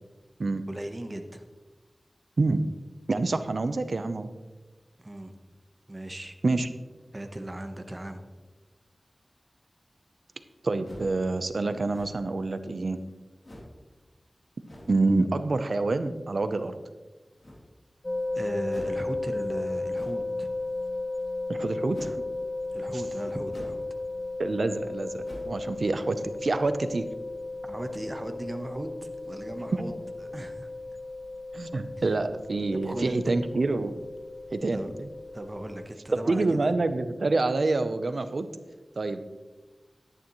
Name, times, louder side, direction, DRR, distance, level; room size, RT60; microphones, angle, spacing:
voice 1, 0.7-1.4 5.0-5.3 5.9-6.4 7.1-8.2 18.3-20.5 22.7-23.9 27.6-30.7 32.7-33.4 34.7-34.9 35.3-36.7, right 1 dB, 35° right, 6 dB, 1.1 m, -37 dB
voice 2, 3.1-4.3 6.4-6.7 10.6-13.0 14.9-16.8 21.5-22.1 24.4-26.2 26.4-27.0 31.5-33.9 34.5-35.1 36.3-38.5 39.0-39.2, right 3 dB, 75° right, 10 dB, 0.7 m, -27 dB
sound 1, 10.8-11.2 11.9-12.4 13.4-13.8 14.6-15.0 17.4-17.9 18.7-19.0 19.9-20.3 21.9-22.2 23.5-23.9 24.2-24.3 25.2-25.6, equal, 65° left, 3.3 m, -45 dB
sound 2, 18.0-35.9, left 2 dB, 35° left, 0.4 m, -35 dB
11.5 x 10.0 x 3.1 m, 1.2 s
wide cardioid pair, 50°, 0 cm